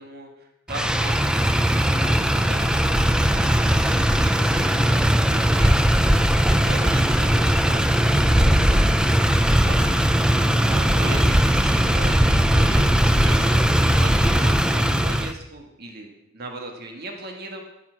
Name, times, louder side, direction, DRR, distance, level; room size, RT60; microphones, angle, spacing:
voice 1, 0.0-4.9 5.3-13.6 13.9-16.1 16.3-17.6, right 2 dB, 50° right, 2 dB, 1.6 m, -38 dB
Motor vehicle (road), 0.7-15.3, equal, 5° right, 0.5 m, -19 dB
14.0 x 5.8 x 7.4 m, 0.90 s
head